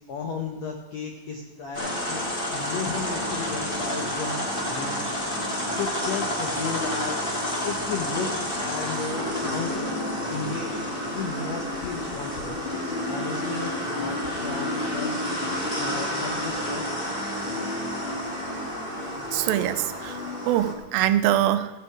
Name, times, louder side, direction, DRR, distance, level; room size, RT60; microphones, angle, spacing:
voice 1, 0.1-2.2 2.5-5.1 5.6-8.3 8.6-9.8 10.3-12.6 13.1-15.2 15.8-16.9, left 5 dB, 75° left, 2 dB, 1.5 m, -34 dB
sound 1, 1.7-20.7, left 1 dB, 40° left, 0.8 m, -30 dB
voice 2, 19.3-20.2 20.5-21.7, right 12 dB, 80° right, 11 dB, 2.3 m, -23 dB
14.5 x 8.5 x 4.8 m, 1.2 s
omnidirectional pair, 4.3 m